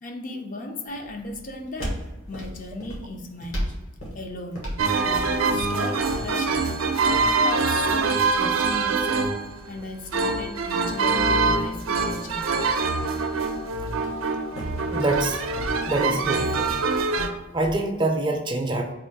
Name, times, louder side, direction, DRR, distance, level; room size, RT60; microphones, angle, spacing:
voice 1, 0.0-3.7 4.1-6.6 7.0-9.3 9.7-12.7, left 2 dB, 40° left, 3 dB, 0.4 m, -36 dB
sound 1, 0.9-17.9, equal, 80° left, 1.5 m, -39 dB
sound 2, 4.8-17.3, right 4 dB, 80° right, 0.5 m, -24 dB
voice 2, 14.9-15.4 15.9-16.7 17.5-18.9, right 2 dB, 25° right, 3 dB, 0.4 m, -25 dB
3.6 x 2.5 x 4.6 m, 1.1 s
head